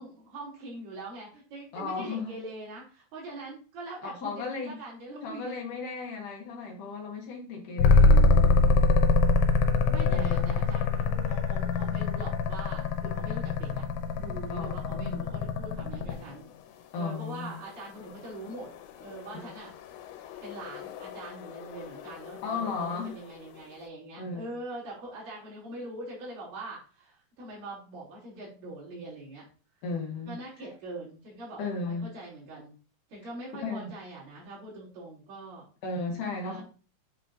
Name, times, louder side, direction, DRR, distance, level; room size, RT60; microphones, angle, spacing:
voice 1, 0.0-5.6 9.8-13.8 14.2-16.5 16.9-18.7 19.0-19.7 20.2-29.4 30.3-32.7 33.1-35.7 36.4-36.6, right 2 dB, 50° right, -8 dB, 4.6 m, -43 dB
voice 2, 1.7-2.4 4.0-4.7 5.2-8.6 10.1-10.6 14.5-15.2 16.9-17.5 19.3-19.5 22.4-23.2 24.2-24.5 29.8-30.4 31.6-32.1 33.6-34.0 35.8-36.6, left 4 dB, 65° left, 1 dB, 2.0 m, -35 dB
sound 1, 7.8-16.3 18.6-23.1, left 3 dB, 85° left, 3.1 m, -25 dB
8.1 x 5.7 x 2.8 m, 0.38 s
omnidirectional pair, 5.1 m